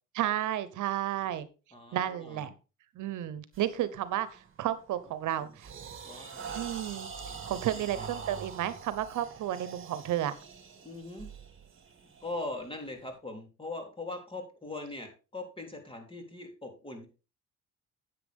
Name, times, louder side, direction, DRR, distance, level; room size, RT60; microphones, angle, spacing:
voice 1, 0.1-1.5 1.9-2.5 3.0-5.7 6.5-7.1 7.4-10.3, right 12 dB, 80° right, 14 dB, 1.0 m, -32 dB
voice 2, 1.7-2.4 5.0-5.1 5.4-5.5 6.0-6.5 7.6-8.1 8.3-8.4 10.8-11.3 12.2-17.1, left 2 dB, 15° left, 3 dB, 3.4 m, -41 dB
sound 1, 3.5-3.8 4.3-4.6 5.0-13.1, right 6 dB, 40° right, 2.1 m, -44 dB
10.0 x 8.4 x 3.6 m, 0.32 s
cardioid pair, 90°, 30 cm